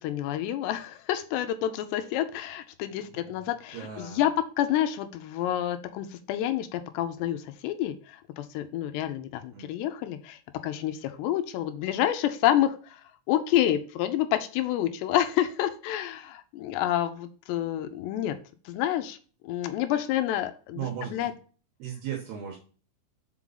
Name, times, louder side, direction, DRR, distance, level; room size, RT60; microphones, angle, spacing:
voice 1, 0.0-13.0 13.3-18.4 18.7-19.2 19.4-20.8 21.1-21.3, left 12 dB, 80° left, 9 dB, 2.7 m, -28 dB
voice 2, 3.0-4.3 9.3-9.7 20.7-21.4 21.8-22.6, right 9 dB, 70° right, 1 dB, 2.8 m, -38 dB
6.1 x 5.2 x 3.9 m, 0.39 s
omnidirectional pair, 5.2 m